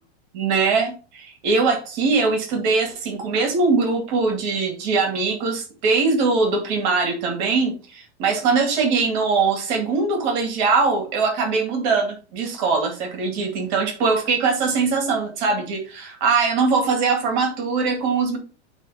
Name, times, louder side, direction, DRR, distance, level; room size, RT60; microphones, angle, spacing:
voice 1, 0.3-18.4, right 4 dB, 45° right, 4 dB, 2.1 m, -21 dB
8.2 x 3.4 x 5.6 m, 0.37 s
supercardioid pair, 165°, 33 cm